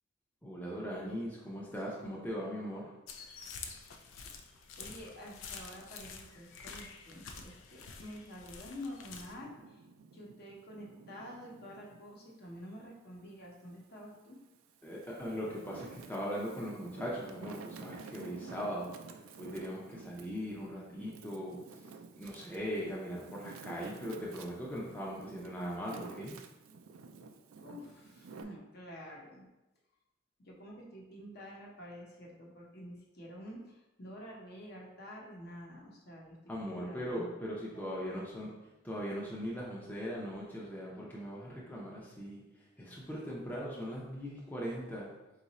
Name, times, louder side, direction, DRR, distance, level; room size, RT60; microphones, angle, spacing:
voice 1, 0.4-2.9 14.8-21.8 22.2-26.4 36.5-38.5 38.8-42.4 42.8-45.1, equal, 10° left, -5 dB, 0.6 m, -40 dB
sound 1, 3.1-9.3, left 5 dB, 85° left, 0.4 m, -48 dB
voice 2, 4.8-9.8 10.1-14.4 27.6-29.5 30.4-37.5 37.7-38.3, equal, 50° left, -2 dB, 0.9 m, -48 dB
Wind, 9.2-12.1 12.6-13.9 14.5-28.4, right 4 dB, 90° right, 0.4 m, -51 dB
3.9 x 2.5 x 4.1 m, 1.0 s
head